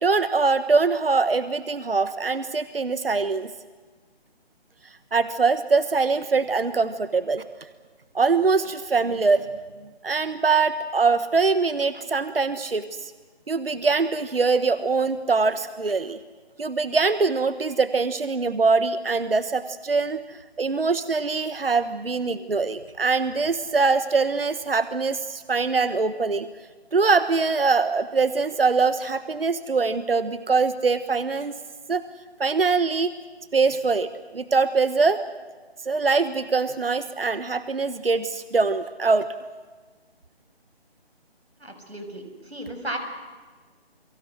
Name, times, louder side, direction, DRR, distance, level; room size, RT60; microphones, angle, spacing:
voice 1, 0.0-3.5 5.1-7.4 8.1-9.5 10.0-13.1 13.5-16.2 16.6-26.5 26.9-31.5 31.9-32.0 32.4-33.1 33.5-35.2 35.8-39.3, right 4 dB, 65° right, 13 dB, 1.4 m, -23 dB
voice 2, 41.6-43.0, right 1 dB, 80° right, 6 dB, 6.9 m, -35 dB
29.5 x 24.0 x 6.3 m, 1.4 s
figure-of-eight pair, 155°, 31 cm